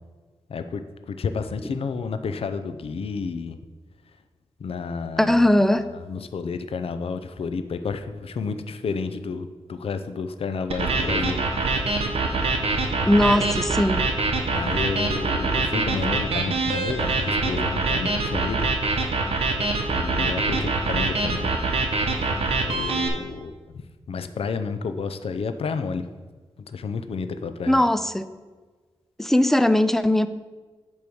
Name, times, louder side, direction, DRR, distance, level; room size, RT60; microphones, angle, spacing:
voice 1, 0.5-0.8 1.1-3.6 4.6-5.4 5.7-12.0 12.3-12.4 13.2-13.4 14.5-19.4 19.9-22.1 22.5-23.5 24.1-26.1 26.7-27.8, left 5 dB, 65° left, 0.5 m, -31 dB
voice 2, 5.2-5.9 13.1-14.1 27.7-28.3 29.2-30.3, left 1 dB, 5° left, 0.4 m, -19 dB
sound 1, 10.7-23.1, right 3 dB, 70° right, 0.9 m, -24 dB
8.5 x 3.1 x 6.2 m
wide cardioid pair, 85°, 10 cm